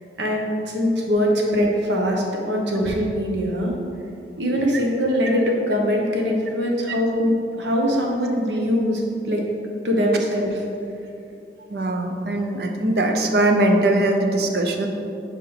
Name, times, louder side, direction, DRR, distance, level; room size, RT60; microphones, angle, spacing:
voice 1, 0.2-3.7 4.4-9.4 9.8-10.6, equal, 85° right, -1 dB, 1.1 m, -22 dB
voice 2, 11.7-14.9, right 1 dB, 60° right, 3 dB, 0.6 m, -21 dB
7.1 x 4.9 x 3.3 m, 2.7 s
head